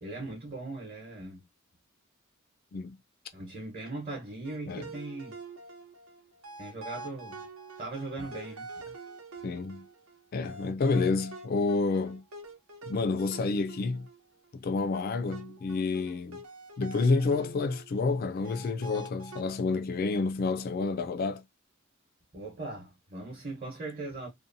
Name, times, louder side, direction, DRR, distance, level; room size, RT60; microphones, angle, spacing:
voice 1, 0.0-1.4 3.3-5.4 6.6-7.4 7.8-8.7 22.3-24.3, right 2 dB, 40° right, 0.9 m, -39 dB
sound 1, 4.4-14.5 14.9-18.2 18.4-19.4, right 2 dB, 75° right, 0.8 m, -46 dB
voice 2, 9.4-9.8 10.3-12.2 12.9-14.1 14.6-16.4 16.8-21.4, left 3 dB, 45° left, 0.3 m, -29 dB
2.7 x 2.1 x 2.5 m
head